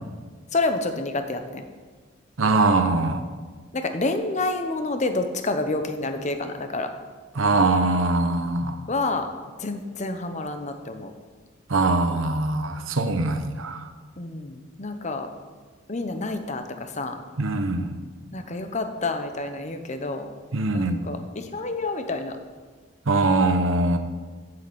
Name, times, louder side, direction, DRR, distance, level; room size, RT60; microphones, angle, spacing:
voice 1, 0.5-1.6 3.7-6.9 8.9-9.3 9.6-11.1 14.2-15.3 15.9-17.2 18.3-20.3 20.7-22.4, left 2 dB, 35° left, 7 dB, 0.9 m, -28 dB
voice 2, 2.4-3.2 7.3-8.8 11.7-13.8 17.4-17.9 20.5-21.0 23.1-24.0, right 2 dB, 80° right, 7 dB, 0.9 m, -22 dB
7.8 x 7.6 x 7.9 m, 1.5 s
head